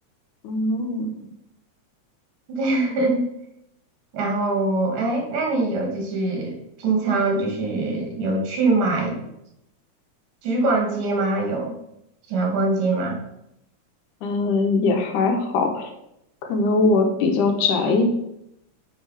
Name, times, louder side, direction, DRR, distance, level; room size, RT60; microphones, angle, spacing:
voice 1, 0.4-1.1 14.2-15.9 16.4-18.1, left 3 dB, 90° left, 4 dB, 2.6 m, -21 dB
voice 2, 2.5-3.3 4.1-9.3 10.4-11.8 12.3-13.2, right 2 dB, 85° right, 1 dB, 3.4 m, -23 dB
9.3 x 4.7 x 4.8 m, 0.80 s
omnidirectional pair, 3.5 m